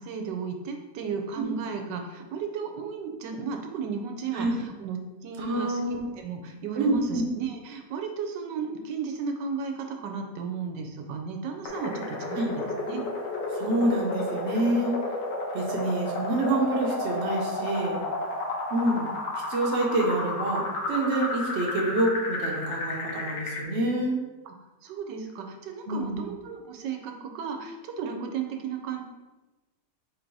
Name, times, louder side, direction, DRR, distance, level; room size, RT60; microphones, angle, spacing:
voice 1, 0.0-5.8 6.2-12.5 12.9-13.0 24.5-24.6 24.8-29.0, right 5 dB, 85° right, 4 dB, 1.2 m, -34 dB
voice 2, 5.4-6.0 6.8-7.3 12.3-12.5 13.5-14.9 15.5-18.0 18.7-19.1 19.5-24.2 25.9-26.2, right 1 dB, 50° right, -1 dB, 0.9 m, -27 dB
sound 1, 11.7-23.7, left 2 dB, 85° left, 1.4 m, -32 dB
3.8 x 2.6 x 4.5 m, 1.1 s
omnidirectional pair, 1.9 m